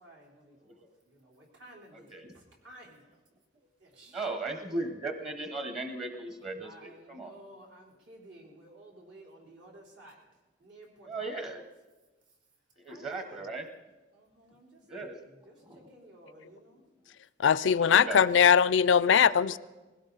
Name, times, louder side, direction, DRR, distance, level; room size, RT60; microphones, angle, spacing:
voice 1, 0.0-3.2 3.8-4.2 6.6-10.3 10.6-11.5 12.9-13.5 14.1-16.8 17.6-18.5 19.1-19.6, right 1 dB, 75° right, 3.8 m, -53 dB
voice 2, 1.9-2.3 4.1-7.3 11.1-11.6 12.8-13.7 14.9-15.2 15.6-15.8 17.8-18.2, right 2 dB, 30° right, 1.1 m, -37 dB
voice 3, 17.4-19.6, left 7 dB, 80° left, 0.4 m, -21 dB
20.5 x 16.5 x 4.0 m
head